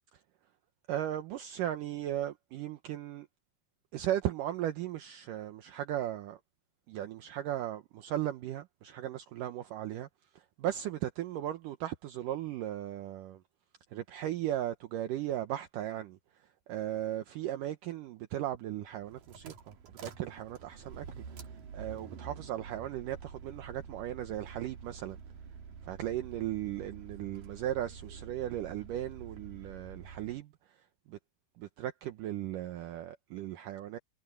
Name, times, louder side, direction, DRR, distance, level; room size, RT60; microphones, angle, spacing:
voice 1, 0.9-3.3 3.9-6.4 6.9-10.1 10.3-13.4 13.9-19.8 20.0-21.4 21.7-25.2 25.8-30.8 31.1-31.2 31.6-34.0, right 12 dB, 75° right, 2.0 m, -37 dB
sound 1, 18.9-30.4, right 6 dB, 55° right, 3.9 m, -48 dB
omnidirectional pair, 4.9 m